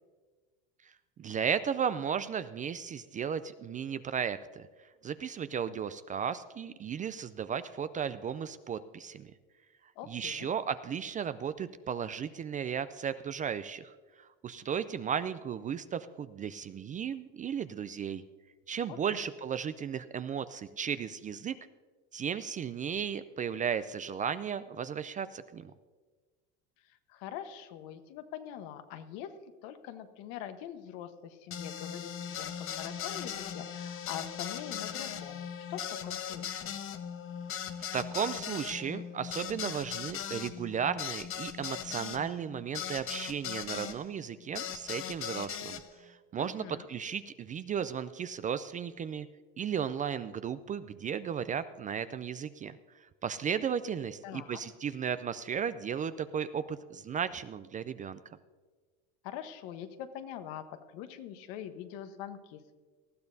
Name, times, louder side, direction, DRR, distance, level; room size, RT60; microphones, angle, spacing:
voice 1, 0.8-4.7 5.0-9.3 10.1-18.2 18.7-21.6 22.1-25.7 37.9-49.3 49.6-58.2, right 7 dB, 25° right, 13 dB, 0.3 m, -35 dB
voice 2, 10.0-10.5 18.9-19.2 27.1-29.3 29.6-36.8 46.4-46.9 54.2-54.6 59.2-60.7 60.9-62.7, left 10 dB, 70° left, 8 dB, 1.2 m, -43 dB
sound 1, 31.5-44.0 44.6-45.8, left 9 dB, 40° left, 1.0 m, -39 dB
19.0 x 13.5 x 2.7 m, 1.4 s
supercardioid pair, 110°, 34 cm